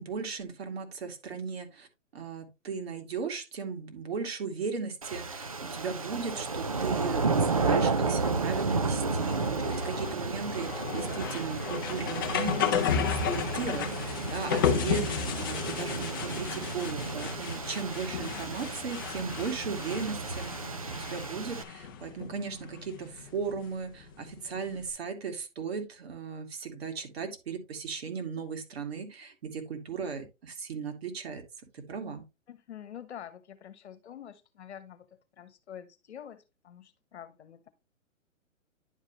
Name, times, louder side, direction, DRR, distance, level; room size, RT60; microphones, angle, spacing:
voice 1, 0.0-1.9 2.1-20.5 20.9-31.4 31.7-32.2, right 5 dB, 50° right, 2.6 m, -37 dB
sound 1, 5.0-21.6, right 4 dB, 30° right, 0.4 m, -32 dB
sound 2, 6.9-24.9, left 7 dB, 15° left, 0.7 m, -34 dB
voice 2, 32.5-37.7, left 9 dB, 55° left, 1.3 m, -47 dB
11.0 x 4.9 x 3.0 m
hypercardioid pair, 165°, 40 cm